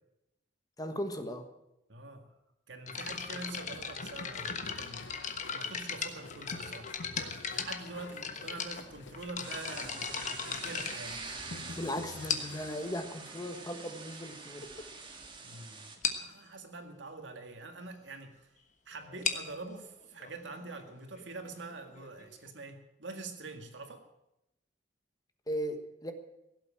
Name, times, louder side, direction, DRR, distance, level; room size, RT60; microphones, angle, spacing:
voice 1, 0.8-1.5 11.8-14.9 25.5-26.1, equal, 20° left, 7 dB, 1.3 m, -37 dB
voice 2, 1.9-2.3 2.7-11.2 15.4-18.5 18.9-24.0, right 3 dB, 75° right, 6 dB, 2.0 m, -45 dB
sound 1, 2.9-12.8, left 3 dB, 80° left, 1.0 m, -49 dB
sound 2, 2.9-11.7 12.3-12.7 13.5-13.6 14.3-14.4 14.6-14.8 15.2-15.3 15.5-15.6 16.0-16.3 19.0-22.5, left 6 dB, 40° left, 1.3 m, -38 dB
sound 3, 9.4-16.0, right 4 dB, 25° right, 1.8 m, -45 dB
16.5 x 7.9 x 8.8 m, 0.87 s
head